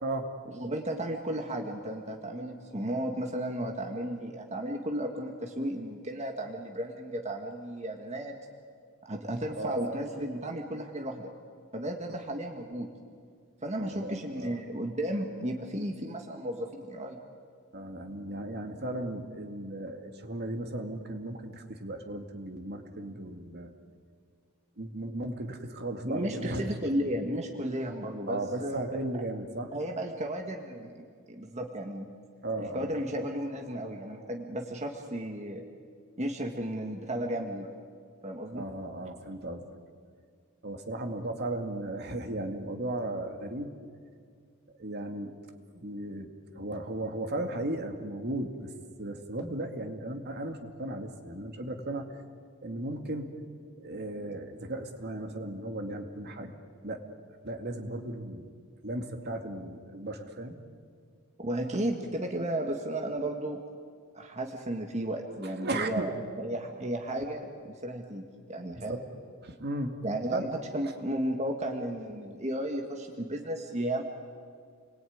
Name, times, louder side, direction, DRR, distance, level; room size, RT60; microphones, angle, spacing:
voice 1, 0.5-8.4 9.0-11.3 11.7-12.9 13.6-17.2 26.0-29.0 29.7-32.0 32.6-35.6 36.2-37.7 38.2-38.6 61.4-63.6 64.1-69.0 70.0-74.0, right 1 dB, 30° right, 2 dB, 1.8 m, -34 dB
voice 2, 9.6-10.0 13.8-14.6 17.7-23.7 24.8-26.6 28.3-29.7 32.4-32.9 38.5-39.6 40.6-43.7 44.8-45.3 45.7-46.3 46.5-48.7 49.0-52.1 52.6-53.3 53.8-56.5 56.8-57.0 57.4-58.5 58.8-60.6 65.6-66.1 68.8-69.0 69.4-69.9 70.3-70.5, right 1 dB, 50° right, 5 dB, 2.2 m, -36 dB
29.5 x 21.5 x 9.5 m, 2.1 s
head